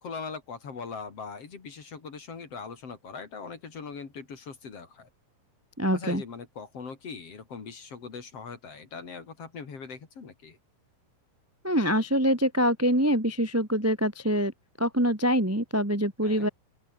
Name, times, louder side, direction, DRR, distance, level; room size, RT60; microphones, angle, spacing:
voice 1, 0.0-5.1 5.9-10.6 16.2-16.5, left 5 dB, 40° left, 3.5 m, -41 dB
voice 2, 5.8-6.2 11.6-14.5 14.8-16.5, equal, 10° right, 0.9 m, -25 dB
open air
omnidirectional pair, 4.9 m